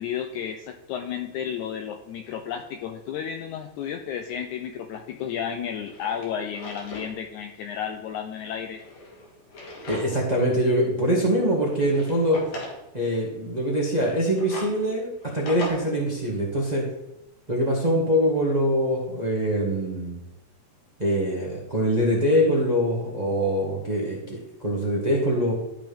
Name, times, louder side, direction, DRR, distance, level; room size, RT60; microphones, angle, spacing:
voice 1, 0.0-8.8, left 8 dB, 80° left, 6 dB, 1.8 m, -32 dB
Drawer open or close, 5.1-5.2 5.7-7.1 7.5-7.6 8.6-10.3 10.7-10.8 11.6-12.8 14.0-15.7, left 1 dB, 60° left, 3.1 m, -39 dB
voice 2, 9.9-12.4 12.9-16.8 17.5-20.2 21.0-25.5, equal, 25° right, -3 dB, 0.8 m, -23 dB
13.5 x 6.1 x 3.6 m, 0.90 s
omnidirectional pair, 3.9 m